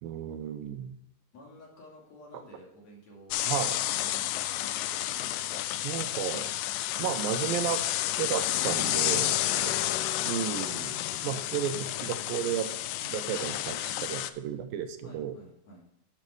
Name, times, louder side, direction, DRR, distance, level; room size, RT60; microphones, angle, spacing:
voice 1, 0.0-1.0 3.5-3.8 5.8-6.5 7.0-7.8 8.2-9.3 9.6-9.7 10.2-10.9 11.2-12.7 13.0-15.4, right 10 dB, 90° right, 9 dB, 2.5 m, -33 dB
voice 2, 1.3-3.5 4.0-4.2 4.9-5.7 9.4-10.0 15.0-15.8, equal, 50° left, -3 dB, 3.5 m, -51 dB
sound 1, 3.3-14.3, left 14 dB, 80° left, 2.0 m, -30 dB
11.0 x 6.5 x 4.7 m, 0.79 s
omnidirectional pair, 4.0 m